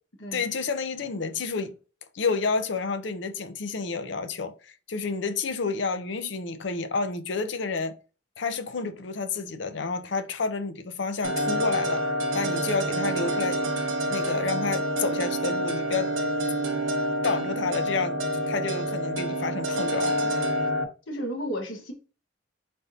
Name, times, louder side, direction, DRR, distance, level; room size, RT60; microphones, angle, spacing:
voice 1, 0.3-1.7 2.1-7.9 8.4-12.0 12.3-13.6 14.1-16.1 17.2-18.2 18.5-20.3, left 4 dB, 65° left, 0.5 m, -30 dB
sound 1, 11.2-20.8, right 1 dB, 85° right, 0.8 m, -27 dB
voice 2, 21.1-21.9, equal, 85° left, 1.1 m, -33 dB
4.1 x 3.5 x 2.6 m
head